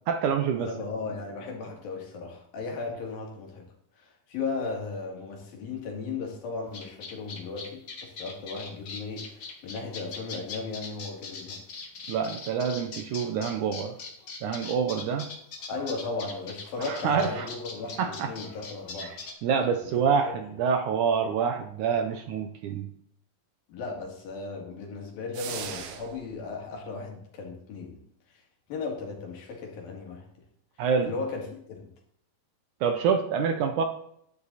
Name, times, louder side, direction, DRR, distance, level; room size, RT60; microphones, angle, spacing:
voice 1, 0.1-0.7 12.1-14.0 14.4-15.3 16.8-17.5 18.0-18.3 19.0-19.1 19.4-22.9 30.8-31.1 32.8-33.8, right 6 dB, 70° right, 7 dB, 2.0 m, -26 dB
voice 2, 0.6-3.7 4.0-11.6 15.7-19.2 19.8-20.3 23.7-28.0 28.3-28.4 28.7-30.3 31.0-31.9, left 4 dB, 75° left, 0 dB, 4.2 m, -36 dB
sound 1, 6.7-19.3, left 4 dB, 40° left, 2.2 m, -41 dB
sound 2, 25.3-26.3, right 8 dB, 90° right, 3.0 m, -38 dB
11.5 x 10.0 x 4.1 m, 0.70 s
omnidirectional pair, 4.2 m